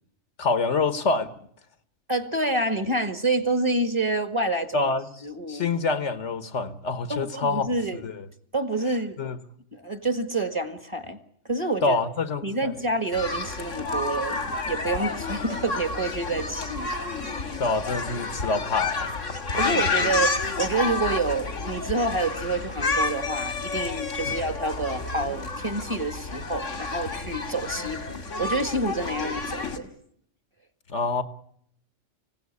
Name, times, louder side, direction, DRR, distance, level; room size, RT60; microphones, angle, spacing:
voice 1, 0.4-1.4 4.7-5.1 5.5-7.7 8.0-8.3 9.2-9.4 11.8-12.7 17.6-19.1 19.5-20.1 24.3-24.4 30.9-31.2, left 4 dB, 70° left, 1.5 m, -26 dB
voice 2, 2.1-4.9 5.2-5.7 7.1-8.0 8.5-9.2 9.7-11.2 11.5-12.0 12.4-14.4 14.7-16.9 19.5-29.9, right 2 dB, 25° right, 1.7 m, -28 dB
sound 1, 13.1-29.8, left 3 dB, 85° left, 2.5 m, -30 dB
25.5 x 17.0 x 9.6 m
omnidirectional pair, 1.3 m